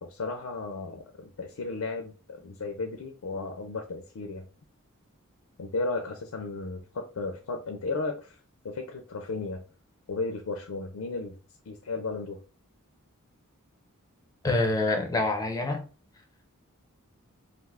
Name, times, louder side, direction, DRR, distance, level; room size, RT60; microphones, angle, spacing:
voice 1, 0.0-4.5 5.6-8.4 8.6-9.6 10.1-11.4 11.7-12.4, left 3 dB, 75° left, 0.4 m, -34 dB
voice 2, 14.4-15.9, left 2 dB, 15° left, 0.5 m, -26 dB
2.5 x 2.4 x 3.3 m
head